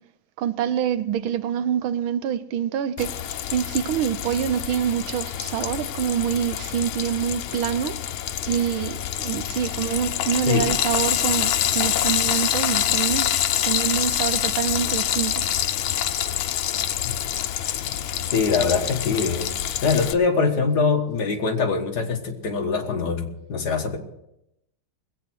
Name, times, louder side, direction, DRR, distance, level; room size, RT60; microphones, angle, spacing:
voice 1, 0.4-8.0 8.5-13.3 13.6-15.5, right 9 dB, 80° right, 1.5 m, -26 dB
Frying (food), 3.0-20.1, left 11 dB, 85° left, 1.6 m, -26 dB
voice 2, 18.3-19.5 19.8-24.0, left 5 dB, 55° left, 1.9 m, -23 dB
20.5 x 8.6 x 6.2 m
omnidirectional pair, 2.2 m